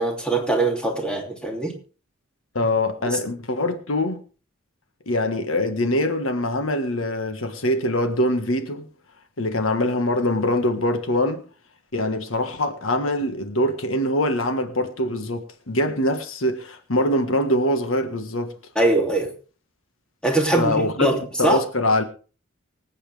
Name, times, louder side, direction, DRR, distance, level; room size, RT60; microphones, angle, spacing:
voice 1, 0.0-1.7 3.1-3.2 18.7-19.3 20.2-21.6, right 2 dB, 5° left, 2.9 m, -22 dB
voice 2, 2.5-4.2 5.1-8.9 9.4-11.4 11.9-18.5 20.5-21.1 21.4-22.0, left 1 dB, 75° left, 1.6 m, -23 dB
25.0 x 8.6 x 3.4 m
head